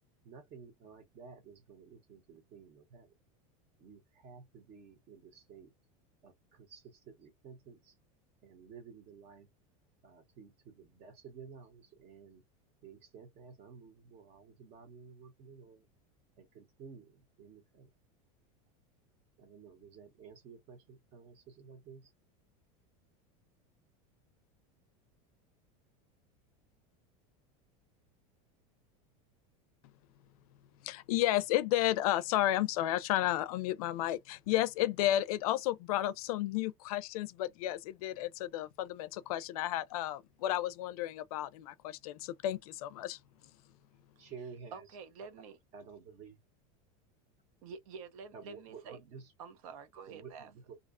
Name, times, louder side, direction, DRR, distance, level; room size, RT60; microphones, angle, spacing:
voice 1, 0.2-3.1 3.8-5.7 6.2-8.0 8.4-9.5 10.0-12.4 12.8-15.8 16.4-17.9 19.4-22.1 44.2-44.9 45.7-46.4 48.3-49.3 50.1-50.8, right 6 dB, 35° right, 0.8 m, -53 dB
voice 2, 30.8-43.2, left 14 dB, 85° left, 0.4 m, -32 dB
voice 3, 44.7-45.6 47.6-49.0 49.4-50.5, right 5 dB, 70° right, 0.7 m, -48 dB
2.5 x 2.1 x 2.5 m
supercardioid pair, 165°, 18 cm